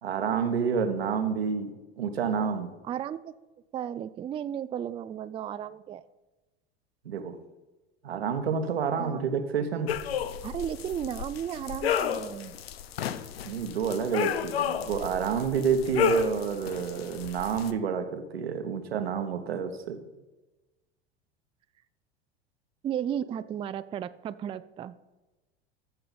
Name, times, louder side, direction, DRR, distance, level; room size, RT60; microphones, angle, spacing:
voice 1, 0.0-2.7 7.0-7.3 8.0-9.9 13.4-20.0, right 6 dB, 85° right, 7 dB, 1.1 m, -29 dB
voice 2, 2.9-3.3 3.7-6.0 9.0-9.2 10.4-12.6 22.8-25.2, right 9 dB, 20° right, 13 dB, 0.3 m, -34 dB
sound 1, 9.9-17.7, left 9 dB, 80° left, 0.6 m, -32 dB
13.5 x 6.7 x 4.1 m, 1.1 s
hypercardioid pair, 80°, 30 cm